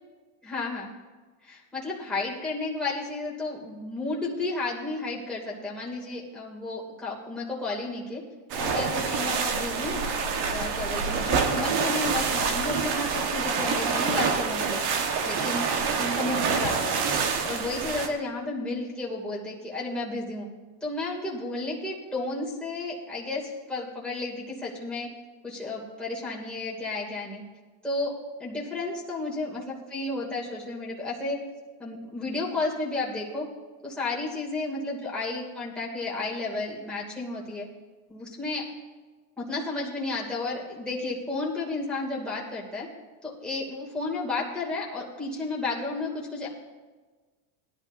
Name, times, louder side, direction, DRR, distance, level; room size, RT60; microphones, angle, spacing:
voice 1, 0.4-0.9 1.4-8.2 8.6-10.0 10.5-14.8 15.2-15.7 16.0-16.9 17.4-20.5 20.8-25.1 25.4-27.4 27.8-31.4 31.8-33.5 33.8-37.7 38.1-38.6 39.4-42.9 43.2-46.5, left 2 dB, ahead, -6 dB, 2.6 m, -32 dB
sound 1, 8.5-18.1, right 5 dB, 50° right, 1.5 m, -27 dB
18.5 x 11.0 x 2.7 m, 1.3 s
supercardioid pair, 125°, 50 cm